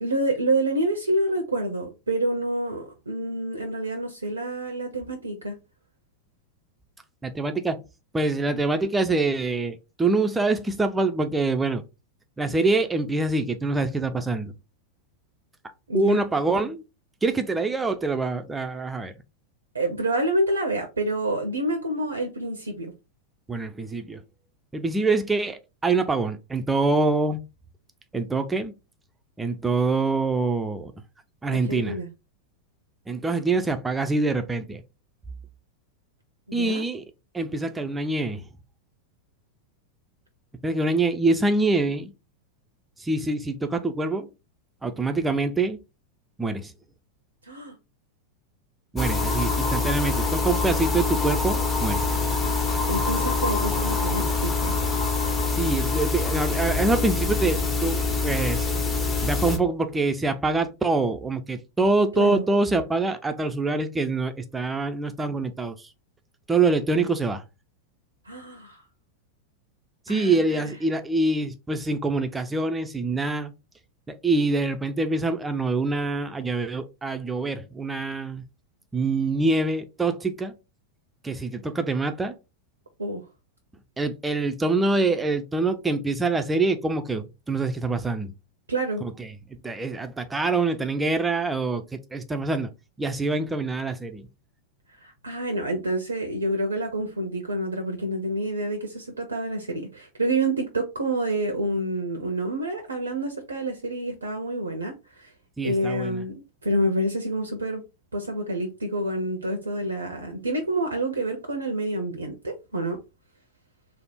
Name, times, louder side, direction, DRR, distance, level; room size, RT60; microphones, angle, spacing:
voice 1, 0.0-5.6 15.9-16.2 19.7-22.9 31.5-32.1 36.5-36.8 47.4-47.7 52.5-54.7 62.2-62.4 68.2-68.8 70.1-70.7 83.0-83.2 88.7-89.1 94.9-105.3 105.6-107.8 108.1-113.0, right 1 dB, 75° right, 0.6 m, -28 dB
voice 2, 7.2-7.8 8.1-11.8 12.4-14.5 15.9-16.8 17.2-19.1 23.5-24.2 24.7-27.4 28.1-28.7 29.4-30.9 31.4-32.0 33.1-34.8 36.5-37.0 37.3-38.4 40.6-42.1 43.0-44.3 44.8-45.8 46.4-46.7 48.9-52.0 55.5-58.7 59.2-65.9 66.5-67.4 70.1-73.5 74.1-78.4 78.9-80.6 81.2-82.4 84.0-88.3 89.0-89.3 89.6-92.7 93.0-94.3 105.6-106.2, right 3 dB, 10° right, 0.4 m, -25 dB
sound 1, 49.0-59.6, left 4 dB, 15° left, 0.8 m, -25 dB
3.4 x 2.1 x 4.1 m
figure-of-eight pair, 90°, 0 cm